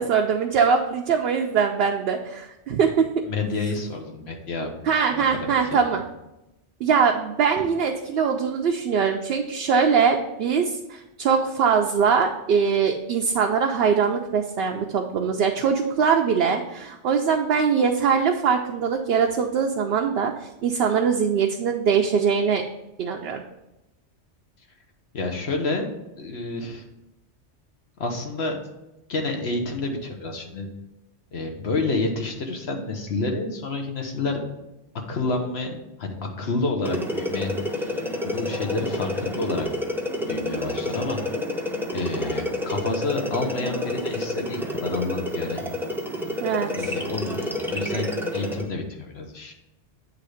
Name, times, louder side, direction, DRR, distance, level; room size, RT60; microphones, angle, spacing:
voice 1, 0.0-3.1 4.9-6.0 6.8-20.3 20.6-22.6 23.0-23.4 46.4-46.9, right 6 dB, 65° right, 2 dB, 0.7 m, -22 dB
voice 2, 3.2-4.7 5.1-5.8 25.1-25.9 26.2-26.8 28.0-28.6 29.1-30.7 31.3-34.4 35.1-37.5 38.2-39.7 40.3-41.2 41.9-45.6 46.7-49.5, left 3 dB, 65° left, 3 dB, 1.2 m, -29 dB
sound 1, 36.8-48.7, left 1 dB, 5° right, 0.5 m, -29 dB
8.6 x 3.3 x 4.9 m, 0.93 s
omnidirectional pair, 1.2 m